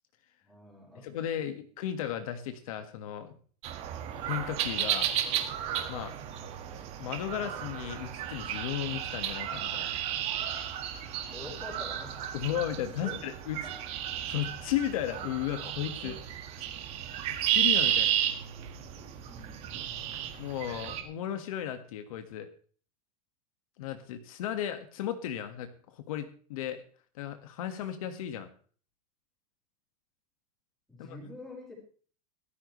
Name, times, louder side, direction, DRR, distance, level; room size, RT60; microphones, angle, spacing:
voice 1, 0.4-1.6 11.3-12.5 13.0-13.2 13.5-13.7 19.2-19.9 30.9-31.8, left 2 dB, ahead, -2 dB, 5.4 m, -47 dB
voice 2, 0.9-3.4 4.2-5.1 5.9-6.1 7.0-10.2 12.3-13.6 14.2-16.4 17.5-18.2 20.4-22.5 23.8-26.8 27.1-28.5 31.0-31.2, left 11 dB, 65° left, 8 dB, 1.8 m, -35 dB
sound 1, 3.6-21.0, right 10 dB, 35° right, 1.8 m, -33 dB
17.0 x 14.0 x 3.2 m, 0.43 s
supercardioid pair, 170°, 19 cm